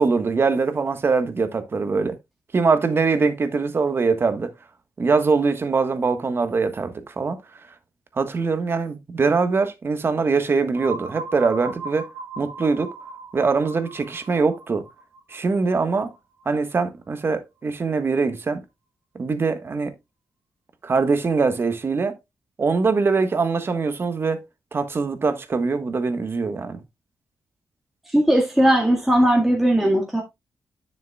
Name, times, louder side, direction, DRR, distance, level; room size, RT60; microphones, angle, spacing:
voice 1, 0.0-2.1 2.5-4.5 5.0-7.4 8.1-12.1 12.4-12.9 13.3-14.8 15.3-16.1 16.4-18.6 19.1-19.9 20.8-22.2 22.6-24.4 24.7-26.8, right 4 dB, 45° right, 1.4 m, -22 dB
sound 1, 10.7-16.4, right 3 dB, 80° right, 1.6 m, -38 dB
voice 2, 28.1-30.2, right 1 dB, 5° right, 1.9 m, -18 dB
9.9 x 6.9 x 2.3 m
cardioid pair, 90°, 6 cm